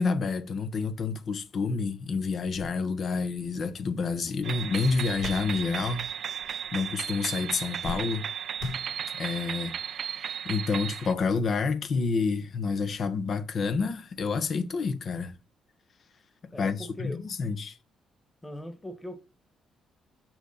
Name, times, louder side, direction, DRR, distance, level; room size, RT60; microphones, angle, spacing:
voice 1, 0.0-6.1 6.4-8.3 9.1-15.4 16.6-17.8, left 4 dB, 55° left, 1.1 m, -29 dB
sound 1, 2.3-6.1 6.3-7.0 7.3-9.4 10.2-10.3 11.6-11.7, left 2 dB, 75° left, 4.0 m, -42 dB
sound 2, 4.4-11.1, right 8 dB, 60° right, 0.4 m, -35 dB
voice 2, 16.5-17.2 18.4-19.2, equal, 15° left, 1.7 m, -40 dB
6.6 x 6.2 x 4.2 m
cardioid pair, 90°, 0 cm